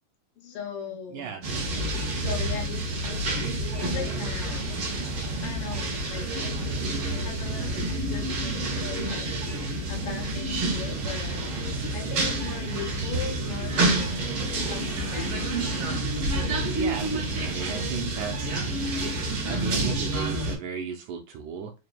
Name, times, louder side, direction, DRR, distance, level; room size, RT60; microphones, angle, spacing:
voice 1, 0.4-4.7 5.4-7.8 8.1-9.3 9.6-14.4 14.7-15.4 16.8-16.9, left 6 dB, 85° left, 2 dB, 1.2 m, -39 dB
voice 2, 1.1-2.1 16.7-18.4 19.0-21.7, right 6 dB, 80° right, 2 dB, 1.9 m, -35 dB
sound 1, 1.4-20.6, right 2 dB, 65° right, 1.3 m, -28 dB
4.9 x 3.3 x 2.2 m, 0.28 s
omnidirectional pair, 3.7 m